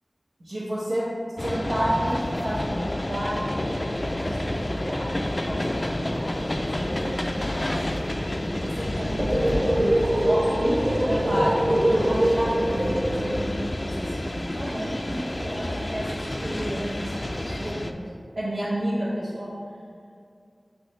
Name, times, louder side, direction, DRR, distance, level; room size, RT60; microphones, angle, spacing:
voice 1, 0.4-1.1 1.4-8.2 8.6-9.9 10.2-18.0 18.3-19.5, equal, 90° right, -11 dB, 1.3 m, -31 dB
sound 1, 1.4-17.9, left 1 dB, 35° left, 0.4 m, -29 dB
sound 2, 9.2-13.6, right 1 dB, 55° right, 1.3 m, -23 dB
6.3 x 4.9 x 3.3 m, 2.3 s
wide cardioid pair, 50°, 0 cm